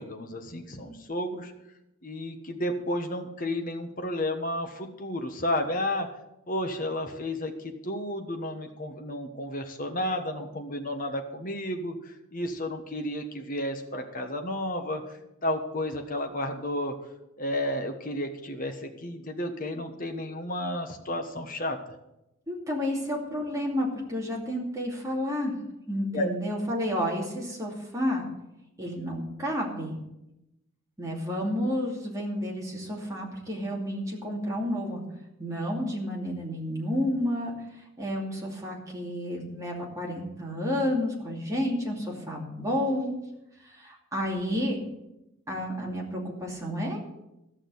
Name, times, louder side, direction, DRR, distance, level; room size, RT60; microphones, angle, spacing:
voice 1, 0.0-1.5 2.0-6.1 6.5-16.9 17.4-21.8 26.1-26.3, left 1 dB, 40° left, 5 dB, 1.3 m, -32 dB
voice 2, 22.5-25.6 25.9-28.3 28.8-30.0 31.0-35.0 35.4-43.2 43.6-44.8 45.5-47.0, equal, 15° right, -3 dB, 2.6 m, -31 dB
14.5 x 6.3 x 7.9 m, 0.92 s
head